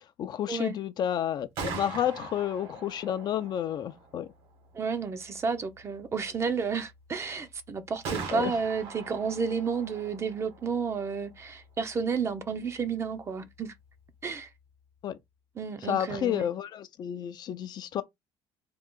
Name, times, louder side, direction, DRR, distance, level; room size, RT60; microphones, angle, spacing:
voice 1, 0.2-4.3 8.3-8.5 15.0-15.2 15.9-18.0, left 10 dB, 50° left, 0.5 m, -30 dB
Gunshot gunfire, 1.3-15.1, right 4 dB, 65° right, 1.6 m, -44 dB
voice 2, 4.7-13.8 14.2-14.5 15.6-16.5, right 5 dB, 30° right, 0.7 m, -31 dB
3.7 x 2.4 x 3.7 m
cardioid pair, 120°, 9 cm